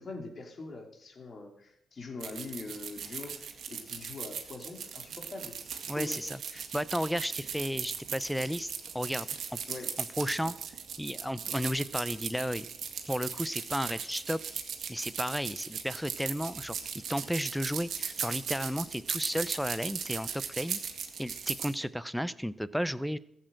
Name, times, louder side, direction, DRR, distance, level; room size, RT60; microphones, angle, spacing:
voice 1, 0.0-6.2 9.7-9.9, left 3 dB, 40° left, 3 dB, 3.0 m, -43 dB
sound 1, 2.2-21.7, right 7 dB, 60° right, 1.9 m, -38 dB
voice 2, 5.9-6.4 6.7-8.7 8.9-9.3 9.5-9.6 10.2-10.5 11.0-12.7 13.1-14.4 14.9-16.8 17.1-20.8 21.2-23.2, equal, ahead, 17 dB, 0.6 m, -33 dB
14.0 x 7.6 x 7.6 m, 0.77 s
cardioid pair, 90°, 0 cm